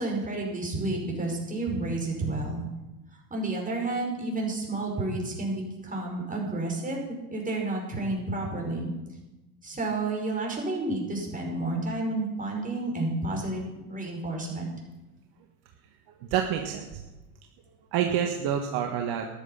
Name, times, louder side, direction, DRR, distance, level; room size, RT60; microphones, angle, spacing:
voice 1, 0.0-2.7 3.3-7.0 7.3-8.9 9.6-14.7, right 2 dB, 15° right, -1 dB, 5.5 m, -30 dB
voice 2, 16.1-17.0 17.9-19.3, right 9 dB, 55° right, 3 dB, 1.7 m, -28 dB
14.0 x 11.0 x 5.7 m, 1.1 s
hypercardioid pair, 95°, 46 cm